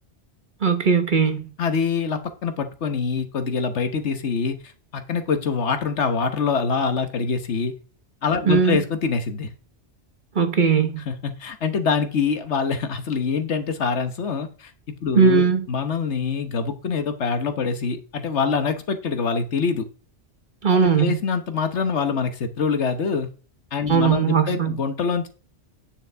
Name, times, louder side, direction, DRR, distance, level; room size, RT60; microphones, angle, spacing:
voice 1, 0.6-1.4 8.5-8.8 10.3-11.0 15.1-15.7 20.6-21.2 23.9-24.8, right 6 dB, 45° right, 1.3 m, -19 dB
voice 2, 1.6-4.6 4.9-7.7 8.2-9.5 11.1-19.9 20.7-23.3 23.7-25.3, left 5 dB, 75° left, 1.4 m, -25 dB
9.2 x 6.7 x 3.5 m
omnidirectional pair, 1.2 m